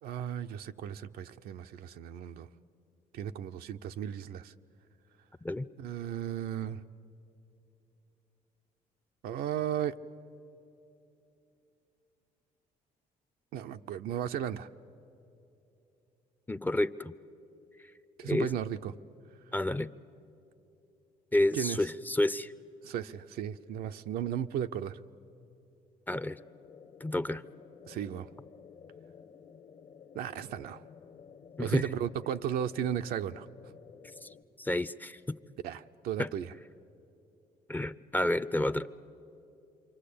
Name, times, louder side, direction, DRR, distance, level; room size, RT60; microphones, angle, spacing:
voice 1, 0.0-2.5 3.1-4.5 5.8-6.8 9.2-9.9 13.5-14.7 18.2-18.9 21.5-21.8 22.8-25.0 27.9-28.3 30.1-30.8 31.6-33.5 35.6-36.5, right 9 dB, 80° right, 0.6 m, -35 dB
voice 2, 16.5-17.1 18.2-18.5 19.5-19.9 21.3-22.5 26.1-26.4 27.0-27.4 31.6-31.9 34.2-34.3 34.6-35.4 36.2-36.3 37.7-38.9, left 1 dB, 10° left, 0.5 m, -30 dB
sound 1, 26.1-34.4, left 7 dB, 65° left, 1.5 m, -53 dB
28.0 x 24.0 x 8.5 m
supercardioid pair, 75°, 15 cm